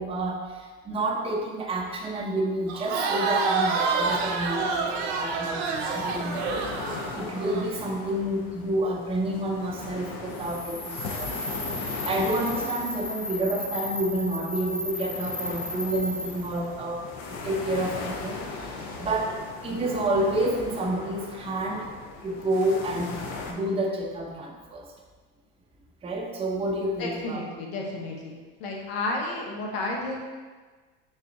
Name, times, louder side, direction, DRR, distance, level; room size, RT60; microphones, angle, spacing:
voice 1, 0.0-6.6 7.1-17.0 17.4-21.9 22.2-24.9 26.0-27.4, right 1 dB, 20° right, -3 dB, 0.7 m, -29 dB
Crowd, 2.7-7.7, right 4 dB, 65° right, 0.6 m, -28 dB
sound 1, 4.1-23.5, left 3 dB, 60° left, 0.7 m, -39 dB
sound 2, 10.3-16.6, left 1 dB, 15° left, 0.5 m, -35 dB
voice 2, 27.0-30.2, left 2 dB, 90° left, 0 dB, 0.9 m, -32 dB
4.0 x 2.4 x 4.0 m, 1.4 s
supercardioid pair, 95°, 29 cm